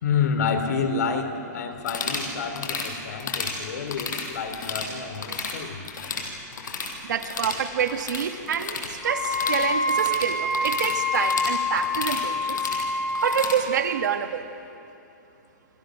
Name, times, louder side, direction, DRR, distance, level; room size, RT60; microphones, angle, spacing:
voice 1, 0.0-5.8, left 6 dB, 60° left, 8 dB, 3.1 m, -28 dB
sound 1, 1.8-2.3 2.6-2.9 3.2-3.6 3.9-4.9 5.1-5.6 5.8-6.9 7.2-13.6, left 5 dB, 80° left, 5.4 m, -33 dB
voice 2, 7.0-12.6 13.2-14.5, right 8 dB, 75° right, 7 dB, 2.0 m, -27 dB
Wind instrument woodwind instrument, 9.0-13.6, left 2 dB, ahead, 1.8 m, -26 dB
27.5 x 26.0 x 6.4 m, 2.7 s
hypercardioid pair, 175°, 10 cm